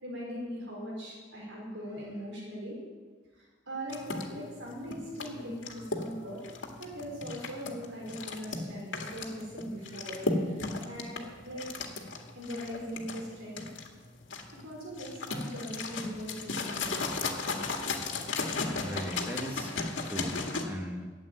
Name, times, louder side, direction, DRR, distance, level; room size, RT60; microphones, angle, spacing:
voice 1, 0.0-2.8 3.3-6.4 6.8-11.7 12.3-13.7 14.6-17.3, equal, 90° right, -4 dB, 5.0 m, -40 dB
sound 1, 3.9-20.6, left 3 dB, 85° left, 1.8 m, -35 dB
voice 2, 18.8-21.1, equal, 10° right, 2 dB, 1.4 m, -39 dB
12.5 x 8.3 x 9.2 m, 1.4 s
head